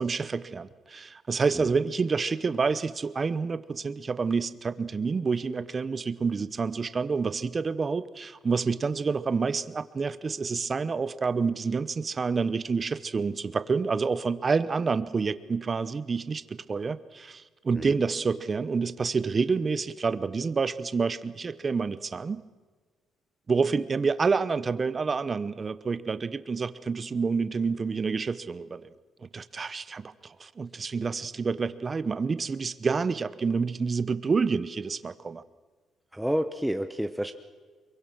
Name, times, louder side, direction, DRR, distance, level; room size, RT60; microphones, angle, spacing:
voice 1, 0.0-22.4 23.5-28.9 29.3-35.4, right 5 dB, 35° right, 15 dB, 1.0 m, -28 dB
voice 2, 36.1-37.3, equal, 5° right, 7 dB, 1.0 m, -30 dB
23.5 x 23.0 x 6.2 m, 1.4 s
cardioid pair, 90°, 0 cm